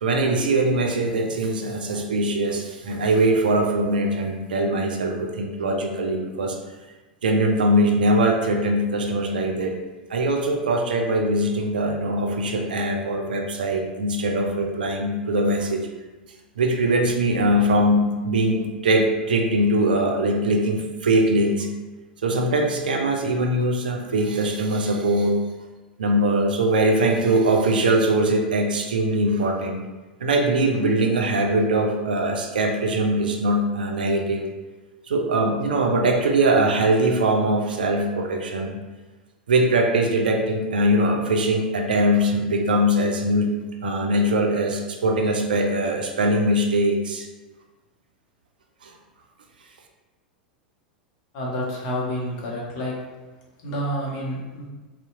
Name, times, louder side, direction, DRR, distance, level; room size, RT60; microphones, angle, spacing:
voice 1, 0.0-6.6 7.2-9.7 10.1-15.9 16.6-21.7 22.2-25.4 26.0-29.8 30.2-34.4 35.1-38.8 39.5-43.5 43.8-47.3 48.8-48.9, right 1 dB, 75° right, 2 dB, 0.4 m, -22 dB
voice 2, 51.3-52.9 53.6-54.7, equal, 50° left, -3 dB, 0.8 m, -29 dB
2.7 x 2.1 x 2.5 m, 1.2 s
figure-of-eight pair, 90°, 5 cm